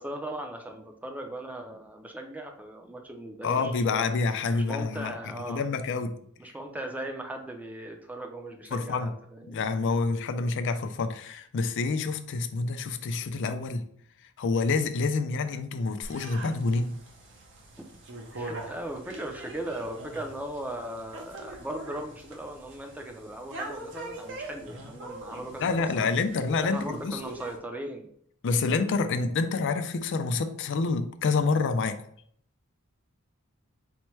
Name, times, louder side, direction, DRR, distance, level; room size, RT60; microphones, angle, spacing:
voice 1, 0.0-4.1 4.5-5.7 6.4-9.6 18.3-26.1 26.6-28.1, right 1 dB, 5° right, 0.5 m, -38 dB
voice 2, 3.4-5.2 5.5-6.2 8.7-9.1 9.5-13.9 14.4-17.0 25.6-27.2 28.4-32.0, left 4 dB, 55° left, 0.4 m, -27 dB
sound 1, 16.0-27.6, right 2 dB, 60° right, 0.8 m, -43 dB
4.3 x 2.1 x 4.5 m
head